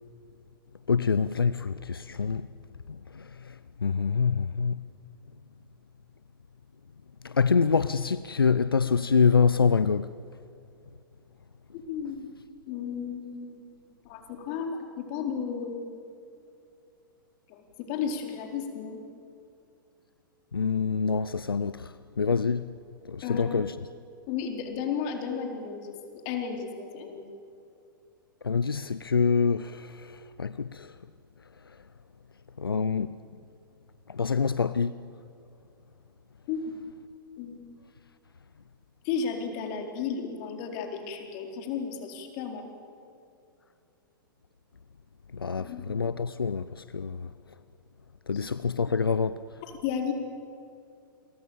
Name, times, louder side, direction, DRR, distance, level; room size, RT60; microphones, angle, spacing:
voice 1, 0.9-2.5 3.1-3.5 3.8-4.9 7.2-10.1 20.5-22.7 23.0-23.8 28.4-30.9 32.6-33.1 34.1-35.0 45.3-47.3 48.3-49.4, left 5 dB, 85° left, 0.6 m, -26 dB
voice 2, 11.7-12.3 12.7-13.7 14.0-16.0 17.5-19.0 23.2-23.6 24.3-25.9 26.2-27.2 36.5-36.6 37.4-37.6 39.0-42.7 45.6-45.8 48.3-48.5 49.8-50.1, left 6 dB, 45° left, 4.2 m, -33 dB
28.5 x 23.0 x 7.3 m
figure-of-eight pair, 110°, 12 cm